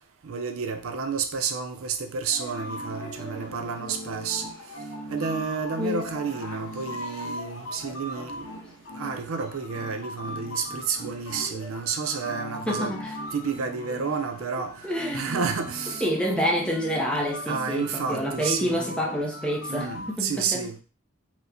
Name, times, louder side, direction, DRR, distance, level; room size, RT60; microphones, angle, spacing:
voice 1, 0.2-4.5 5.1-8.6 8.9-13.0 13.3-14.8 15.1-16.1 17.1-18.8 19.7-20.8, right 6 dB, 75° right, 0.5 m, -30 dB
sound 1, 2.3-20.1, left 1 dB, 80° left, 0.7 m, -38 dB
voice 2, 12.7-13.1 14.8-15.5 16.0-20.6, equal, 5° left, 0.5 m, -28 dB
4.4 x 2.1 x 2.6 m
head